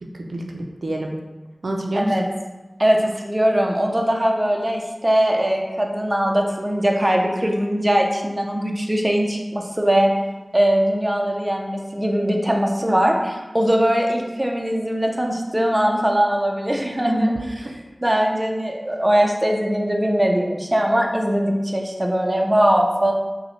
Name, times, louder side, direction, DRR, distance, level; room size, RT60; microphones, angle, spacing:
voice 1, 0.0-1.2 1.6-2.2 17.0-17.8, right 1 dB, 90° right, 1 dB, 0.4 m, -26 dB
voice 2, 2.8-10.1 10.5-17.3 18.0-23.1, equal, 20° right, 1 dB, 0.5 m, -20 dB
5.2 x 2.1 x 3.1 m, 1.2 s
wide cardioid pair, 60°, 0 cm